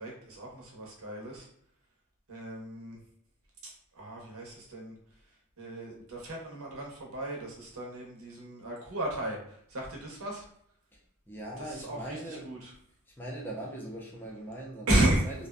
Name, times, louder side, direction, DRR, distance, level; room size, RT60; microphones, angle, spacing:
voice 1, 0.0-1.5 2.3-3.0 3.6-4.9 5.6-10.4 11.6-12.7 14.9-15.3, right 1 dB, 70° right, -2 dB, 0.8 m, -33 dB
voice 2, 11.3-12.5 13.2-15.5, right 1 dB, 10° left, -4 dB, 0.5 m, -40 dB
2.5 x 2.2 x 2.3 m, 0.68 s
head